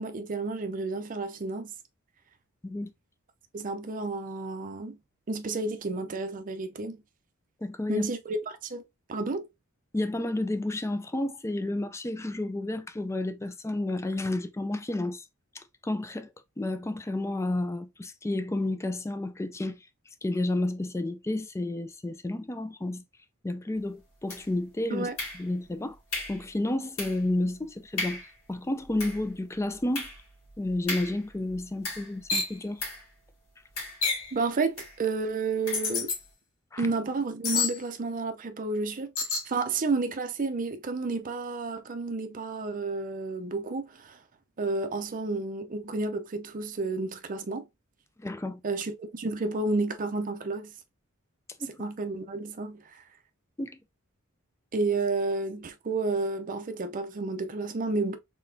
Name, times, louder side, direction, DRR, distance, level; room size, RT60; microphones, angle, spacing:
voice 1, 0.0-1.7 3.5-5.0 5.3-7.0 7.9-8.8 9.1-9.5 24.9-25.1 34.3-36.1 36.8-39.1 39.5-44.2 44.6-47.7 48.6-50.7 51.8-53.0 54.7-58.2, right 3 dB, 40° right, 0.5 m, -31 dB
voice 2, 7.6-8.1 9.9-15.3 15.5-16.3 16.6-19.9 20.2-23.0 23.4-26.0 26.3-30.1 30.6-32.9 36.7-36.9 48.2-48.6 51.6-51.7 53.6-53.8, left 1 dB, 15° left, 0.4 m, -31 dB
sound 1, 24.3-24.7 25.2-25.7 26.1-26.5 27.0-27.3 27.6-27.7 28.0-28.4 28.8-32.3 32.8-33.1 33.8-34.3 34.8-35.0 35.7-35.9, left 2 dB, 85° left, 2.5 m, -37 dB
sound 2, 32.3-32.6 34.0-34.3 35.7-36.2 37.4-37.7 39.2-39.5, left 4 dB, 70° left, 1.7 m, -28 dB
4.0 x 3.7 x 2.6 m
head